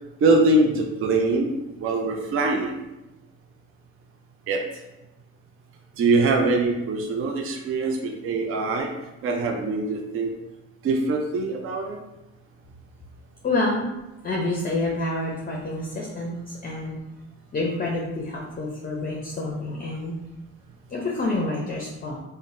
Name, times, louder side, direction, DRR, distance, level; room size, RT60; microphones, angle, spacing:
voice 1, 0.2-2.8 4.5-4.6 6.0-8.9 9.2-10.3 10.8-12.0, right 2 dB, 45° right, 2 dB, 0.5 m, -23 dB
voice 2, 13.4-13.9 14.2-17.0 17.5-20.2 20.9-22.2, left 2 dB, 30° left, -2 dB, 0.5 m, -28 dB
3.7 x 2.1 x 2.5 m, 0.97 s
cardioid pair, 90°, 30 cm